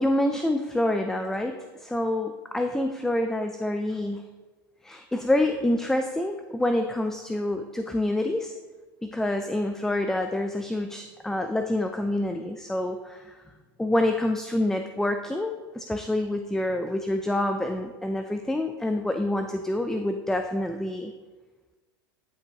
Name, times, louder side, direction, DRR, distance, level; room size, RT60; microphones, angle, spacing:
voice 1, 0.0-4.3 4.8-8.5 9.0-13.4 13.8-21.1, left 1 dB, 5° left, 6 dB, 0.4 m, -27 dB
12.0 x 5.6 x 2.9 m, 1.3 s
hypercardioid pair, 105°, 13 cm